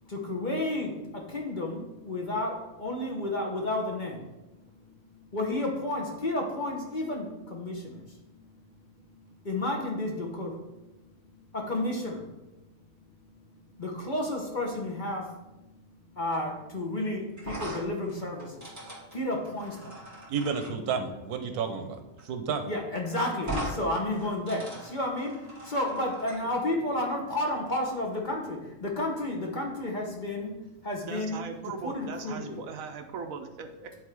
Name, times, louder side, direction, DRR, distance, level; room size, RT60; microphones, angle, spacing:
voice 1, 0.1-0.9 1.3-2.5 2.8-4.2 5.3-7.9 9.4-10.5 11.5-12.2 13.8-15.2 16.2-18.5 19.1-19.7 22.7-25.3 25.7-30.5 30.8-31.4 31.8-32.6, left 1 dB, 35° left, 1.1 m, -31 dB
sound 1, 17.4-20.7 22.2-22.3 22.6-22.7 23.4-23.8 24.1-26.4, right 1 dB, 10° right, 1.9 m, -39 dB
voice 2, 20.3-22.7, right 6 dB, 90° right, 1.3 m, -31 dB
voice 3, 31.0-34.0, right 5 dB, 70° right, 1.0 m, -39 dB
9.4 x 3.7 x 4.7 m
omnidirectional pair, 1.6 m